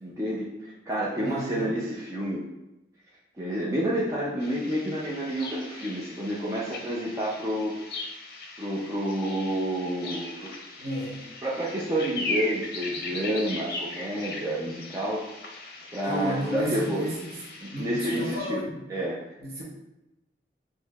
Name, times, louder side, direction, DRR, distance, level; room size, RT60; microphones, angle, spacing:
voice 1, 0.0-2.4 3.4-7.8 8.6-10.6 11.4-15.2 15.9-17.1 17.6-18.6 18.9-19.2, right 1 dB, 15° right, -6 dB, 0.5 m, -29 dB
voice 2, 1.2-1.8 10.8-11.2 16.0-17.3 17.7-18.9 19.4-19.6, equal, 60° right, -3 dB, 0.9 m, -32 dB
sound 1, 4.4-18.4, left 2 dB, 60° left, 0.6 m, -39 dB
6.2 x 2.7 x 2.3 m, 0.97 s
head